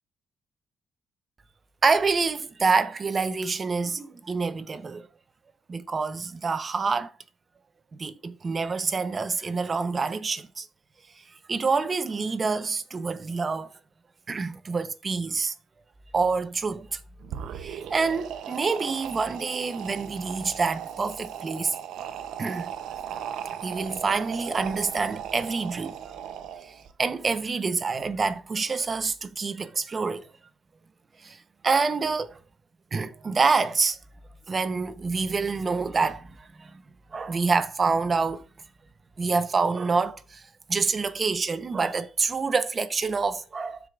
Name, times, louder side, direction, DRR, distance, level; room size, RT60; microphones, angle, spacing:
voice 1, 1.8-5.1 5.7-7.1 8.0-10.7 11.5-13.7 14.3-15.5 16.1-17.0 17.5-21.8 22.4-22.7 23.6-26.1 26.6-26.7 27.0-30.3 31.2-31.4 31.6-32.4 32.9-34.0 34.5-36.8 37.1-38.4 39.2-43.8, right 4 dB, 35° right, 0.7 m, -27 dB
sound 1, 17.2-26.9, right 9 dB, 85° right, 0.6 m, -37 dB
13.0 x 4.9 x 2.4 m
cardioid pair, 90°, 0 cm